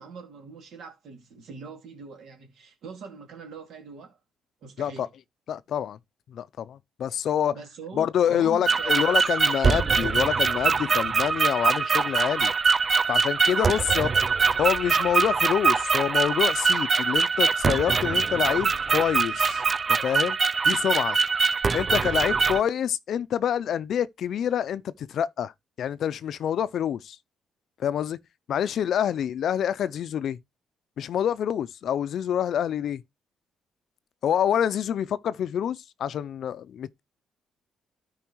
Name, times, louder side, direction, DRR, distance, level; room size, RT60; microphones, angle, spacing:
voice 1, 0.0-4.2 4.6-5.1 7.5-9.2 13.6-14.1, right 5 dB, 75° right, 2.4 m, -43 dB
voice 2, 5.5-6.0 6.3-7.5 8.0-12.5 13.1-14.1 14.6-19.6 19.9-20.4 20.6-21.2 21.7-25.5 25.8-27.2 27.8-28.2 28.5-30.4 31.0-33.0 34.2-37.0, left 9 dB, 65° left, 0.4 m, -27 dB
sound 1, 8.7-22.6, right 5 dB, 35° right, 0.4 m, -23 dB
12.5 x 4.8 x 3.0 m
cardioid pair, 90°, 0 cm